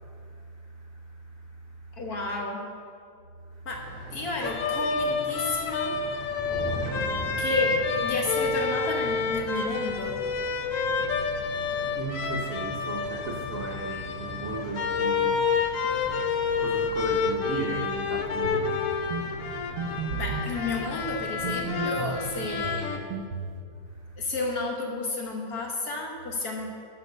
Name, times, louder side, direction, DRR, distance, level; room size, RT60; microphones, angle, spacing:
voice 1, 0.2-1.4 3.6-3.7 6.8-7.2 11.1-11.2 11.7-20.2 23.9-24.2, right 3 dB, 55° right, -2 dB, 1.0 m, -37 dB
voice 2, 1.9-2.6 3.6-3.8 4.1-6.0 7.4-10.2 20.1-23.0 24.2-26.7, left 2 dB, 50° left, 0 dB, 1.5 m, -32 dB
sound 1, 3.7-22.8, equal, 10° left, 2.6 m, -41 dB
sound 2, 4.4-23.0, left 5 dB, 75° left, 0.7 m, -29 dB
sound 3, 18.4-18.7 19.1-19.3 19.8-20.5 21.4-22.2 22.6-23.6, right 5 dB, 70° right, 1.3 m, -33 dB
12.5 x 4.6 x 6.6 m, 2.4 s
omnidirectional pair, 2.2 m